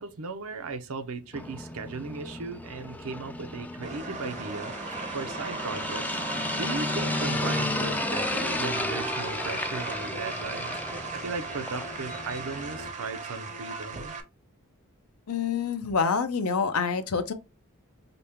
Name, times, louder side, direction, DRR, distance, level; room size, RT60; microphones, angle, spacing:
voice 1, 0.0-6.2 6.6-14.2, right 4 dB, 70° right, 0.6 m, -37 dB
sound 1, 1.3-12.9, left 2 dB, 5° left, 0.4 m, -33 dB
sound 2, 3.8-14.2, right 4 dB, 35° right, 0.6 m, -37 dB
voice 2, 15.3-17.3, left 5 dB, 75° left, 0.6 m, -27 dB
5.2 x 2.2 x 2.8 m
head